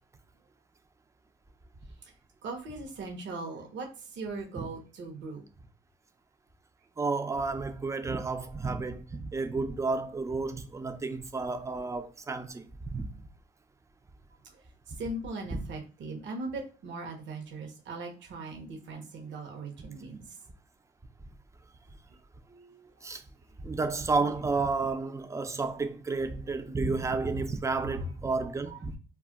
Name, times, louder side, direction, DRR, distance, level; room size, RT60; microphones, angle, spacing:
voice 1, 2.4-5.4 15.0-20.2 22.5-22.9 28.7-28.8, right 3 dB, 70° right, 0.8 m, -39 dB
voice 2, 7.0-13.2 15.5-15.6 23.0-23.2 23.6-29.0, right 3 dB, 15° right, 0.4 m, -31 dB
2.3 x 2.1 x 3.8 m
cardioid pair, 90°, 20 cm